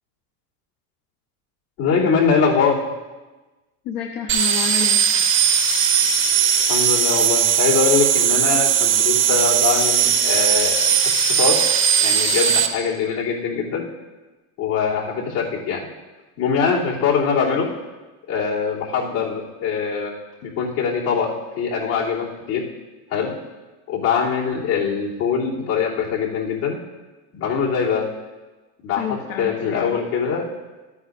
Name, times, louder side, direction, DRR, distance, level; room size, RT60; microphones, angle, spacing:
voice 1, 1.8-2.8 6.7-11.1 11.4-11.6 12.0-13.8 14.6-15.9 16.4-17.7 18.3-20.1 20.4-22.6 23.1-23.3 23.9-26.8 27.3-28.1 28.8-30.5, left 6 dB, 75° left, -7 dB, 3.1 m, -22 dB
voice 2, 3.8-5.0 29.0-30.0, left 7 dB, 55° left, 0 dB, 1.0 m, -29 dB
sound 1, 4.3-12.7, right 8 dB, 25° right, 0.8 m, -18 dB
13.0 x 9.6 x 2.6 m, 1.2 s
supercardioid pair, 115°, 46 cm